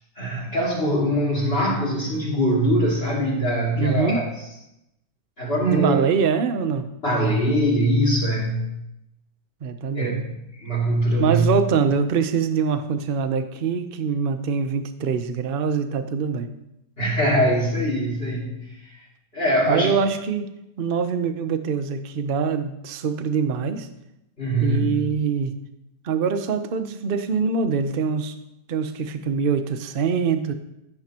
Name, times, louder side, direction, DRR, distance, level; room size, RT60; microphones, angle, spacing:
voice 1, 0.2-4.3 5.4-5.9 7.0-8.7 9.9-10.2 10.6-11.5 17.0-18.7 19.3-20.1 24.4-25.0, equal, 35° left, -7 dB, 2.7 m, -22 dB
voice 2, 3.8-4.2 5.7-6.9 9.6-10.3 11.2-16.5 19.7-20.4 20.8-23.9 24.6-25.6 26.0-28.4 28.7-30.5, right 6 dB, 50° right, 9 dB, 0.7 m, -24 dB
15.5 x 9.5 x 2.9 m, 0.86 s
omnidirectional pair, 1.9 m